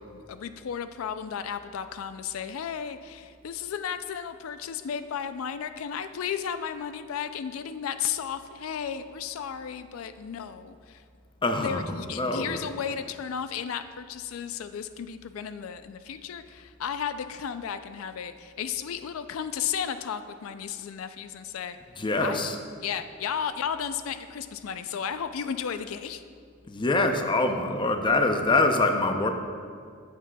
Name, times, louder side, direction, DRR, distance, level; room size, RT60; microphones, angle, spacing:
voice 1, 0.0-11.0 11.6-21.8 22.2-22.5 22.8-26.2, left 8 dB, 85° left, 10 dB, 0.4 m, -34 dB
voice 2, 11.4-12.6 22.0-22.6 26.7-29.3, left 2 dB, 25° left, 5 dB, 0.5 m, -24 dB
14.0 x 7.4 x 2.3 m, 2.2 s
head